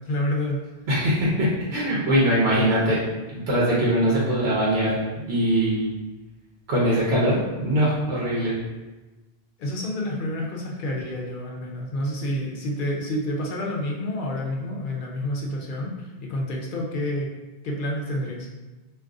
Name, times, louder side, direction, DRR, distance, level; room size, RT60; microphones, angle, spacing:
voice 1, 0.1-0.6 9.6-17.3 17.6-18.5, left 1 dB, 60° left, -1 dB, 0.7 m, -29 dB
voice 2, 0.9-3.0 3.3-5.0 5.3-5.9 6.7-8.5, equal, 85° right, -6 dB, 1.0 m, -22 dB
2.6 x 2.4 x 3.6 m, 1.2 s
omnidirectional pair, 1.0 m